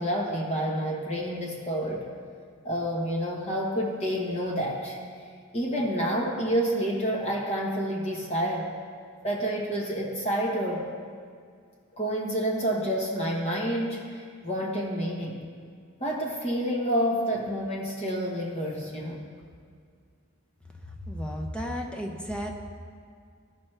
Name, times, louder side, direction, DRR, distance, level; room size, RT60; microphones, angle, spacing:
voice 1, 0.0-2.1 2.6-5.0 5.5-8.7 9.2-10.9 11.9-15.4 16.0-19.2, equal, 30° left, -2 dB, 1.3 m, -29 dB
voice 2, 21.1-22.6, equal, 5° left, 1 dB, 0.6 m, -33 dB
14.0 x 5.9 x 3.3 m, 2.1 s
head